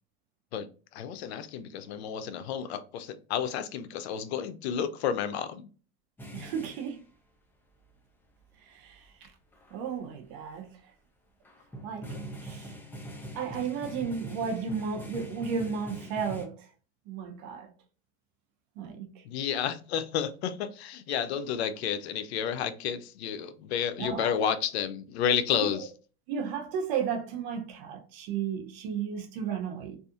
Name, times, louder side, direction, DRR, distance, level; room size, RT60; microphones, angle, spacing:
voice 1, 0.9-5.7 19.2-25.9, left 8 dB, 80° left, 0.5 m, -31 dB
sound 1, 6.2-7.0 8.4-8.5 8.9-9.0 9.5-9.8 11.5-16.5, right 1 dB, 5° left, 0.4 m, -43 dB
voice 2, 6.3-7.0 8.7-9.3 9.7-10.7 11.8-12.7 13.3-16.5 17.1-17.7 18.8-19.1 24.0-24.3 25.6-25.8 26.3-30.0, right 6 dB, 55° right, 0.7 m, -34 dB
2.7 x 2.4 x 2.4 m
supercardioid pair, 120°, 32 cm